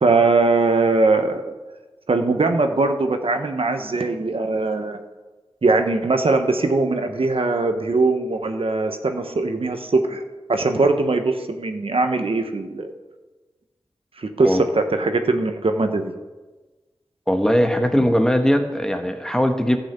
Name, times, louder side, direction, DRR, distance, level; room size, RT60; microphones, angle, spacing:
voice 1, 0.0-1.6 2.1-5.0 5.6-10.2 10.5-12.9 14.2-16.1, right 3 dB, 65° right, 7 dB, 1.0 m, -21 dB
voice 2, 17.3-19.8, equal, 5° left, 6 dB, 1.2 m, -19 dB
12.0 x 6.1 x 8.0 m, 1.2 s
cardioid pair, 45°, 10 cm